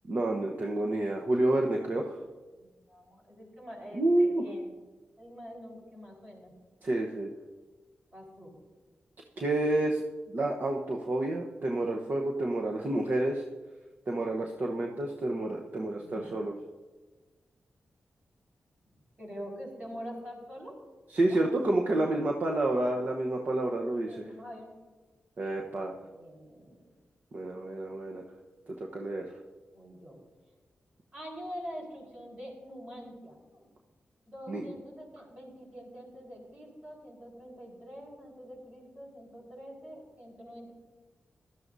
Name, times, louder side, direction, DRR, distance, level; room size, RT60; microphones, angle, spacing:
voice 1, 0.1-2.2 3.9-4.4 6.8-7.3 9.4-10.0 10.3-13.4 14.1-16.5 21.1-24.2 25.4-25.9 27.3-28.2 28.9-29.3 34.5-34.7, right 1 dB, 55° right, 0 dB, 1.0 m, -29 dB
voice 2, 2.6-4.7 5.2-6.5 8.1-8.5 16.0-16.3 19.2-20.7 21.2-21.4 21.9-22.2 24.1-24.7 25.4-25.6 25.9-26.8 29.7-30.2 31.1-33.7 34.3-40.7, equal, 35° right, -2 dB, 4.7 m, -45 dB
17.0 x 12.5 x 2.7 m, 1.3 s
cardioid pair, 80°, 4 cm